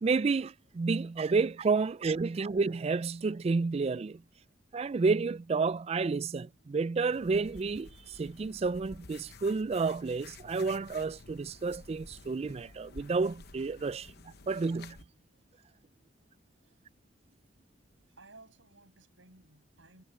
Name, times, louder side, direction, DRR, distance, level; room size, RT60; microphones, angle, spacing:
voice 1, 0.0-4.2 4.7-15.0, right 4 dB, 30° right, 0.3 m, -30 dB
sound 1, 7.1-15.0, left 3 dB, 55° left, 0.9 m, -52 dB
voice 2, 18.1-20.0, right 2 dB, 70° right, 8.0 m, -57 dB
head